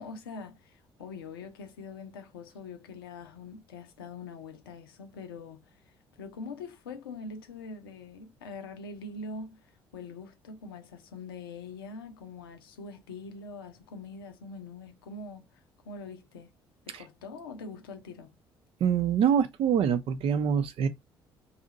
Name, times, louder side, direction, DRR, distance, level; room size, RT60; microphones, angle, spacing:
voice 1, 0.0-5.8 6.2-16.5 16.9-18.4, left 4 dB, 80° left, 0.6 m, -43 dB
voice 2, 18.8-20.9, right 8 dB, 50° right, 0.6 m, -25 dB
2.7 x 2.4 x 4.0 m
figure-of-eight pair, 50°, 12 cm